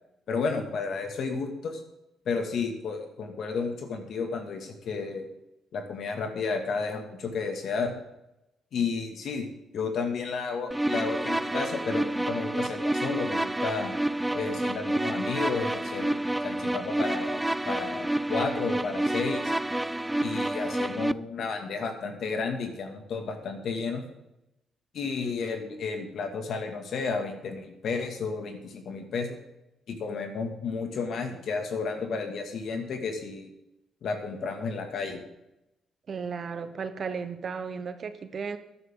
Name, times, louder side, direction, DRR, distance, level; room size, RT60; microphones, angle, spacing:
voice 1, 0.3-1.8 2.3-5.3 5.7-7.9 8.7-9.4 9.7-13.9 14.3-19.5 20.2-24.0 24.9-29.4 29.9-33.5 34.0-35.2, left 4 dB, 65° left, 5 dB, 2.2 m, -32 dB
sound 1, 10.7-21.1, right 1 dB, 10° right, 0.3 m, -29 dB
voice 2, 36.1-38.6, right 5 dB, 45° right, 10 dB, 1.1 m, -34 dB
13.0 x 11.0 x 3.9 m, 0.89 s
cardioid pair, 90°, 0 cm